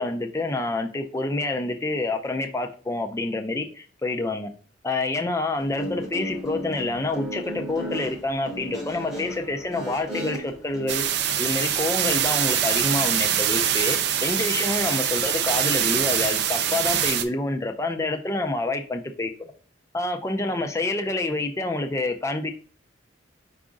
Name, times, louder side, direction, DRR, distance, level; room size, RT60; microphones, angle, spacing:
voice 1, 0.0-4.5 4.8-11.0 11.4-19.5 19.9-22.5, left 2 dB, 15° left, 4 dB, 0.4 m, -27 dB
Guitar, 5.6-10.9, equal, ahead, 0.9 m, -35 dB
sound 1, 10.9-17.2, right 9 dB, 55° right, 0.4 m, -24 dB
4.9 x 2.5 x 3.6 m, 0.40 s
head